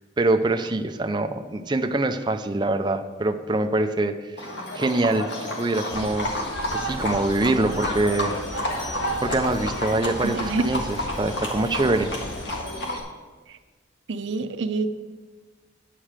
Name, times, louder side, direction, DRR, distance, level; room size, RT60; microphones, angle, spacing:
voice 1, 0.2-4.4 4.7-6.3 6.7-8.3 9.2-12.1, right 2 dB, 25° right, 7 dB, 0.4 m, -24 dB
Livestock farm animals working animals, 4.4-13.0, left 1 dB, 60° left, 1.7 m, -30 dB
sound 1, 5.9-12.6, left 1 dB, 85° left, 1.2 m, -38 dB
voice 2, 10.2-10.6 14.1-14.9, right 3 dB, 70° right, 8 dB, 0.6 m, -26 dB
9.9 x 4.9 x 7.4 m, 1.3 s
head